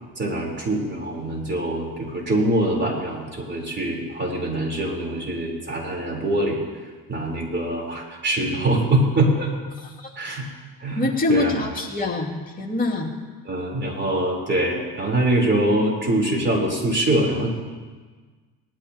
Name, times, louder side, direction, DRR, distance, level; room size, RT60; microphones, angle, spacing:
voice 1, 0.2-6.6 7.1-9.5 10.2-10.5 10.8-11.5 13.5-17.5, right 1 dB, 25° right, -1 dB, 3.8 m, -23 dB
voice 2, 9.8-10.1 11.0-13.1, left 2 dB, 20° left, -2 dB, 2.4 m, -25 dB
19.0 x 13.0 x 2.9 m, 1.4 s
cardioid pair, 90°, 42 cm